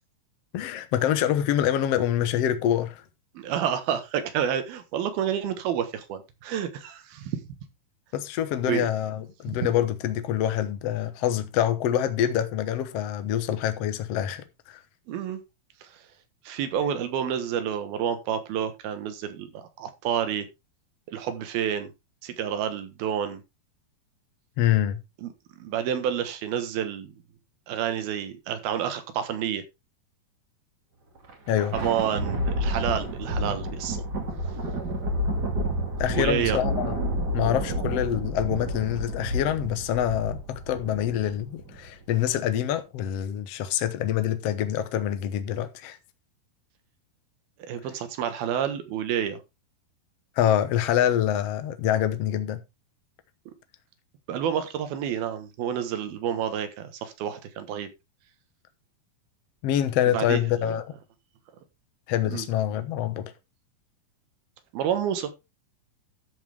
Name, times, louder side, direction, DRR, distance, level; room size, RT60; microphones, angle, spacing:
voice 1, 0.5-3.0 8.1-14.8 24.6-25.0 31.5-31.7 36.0-37.0 37.3-46.0 50.4-52.6 59.6-60.8 62.1-63.3, left 11 dB, 70° left, 1.5 m, -26 dB
voice 2, 3.3-7.4 8.7-8.8 15.1-15.4 15.8-16.0 16.4-20.5 21.1-21.9 22.2-23.4 25.2-27.1 27.7-29.6 31.7-34.0 36.1-36.6 47.6-49.4 54.3-57.9 60.1-60.4 60.6-60.8 62.3-62.5 64.7-65.3, right 9 dB, 85° right, 3.3 m, -29 dB
Thunder, 31.2-41.9, equal, 35° right, 2.2 m, -30 dB
13.0 x 7.9 x 3.5 m
omnidirectional pair, 4.2 m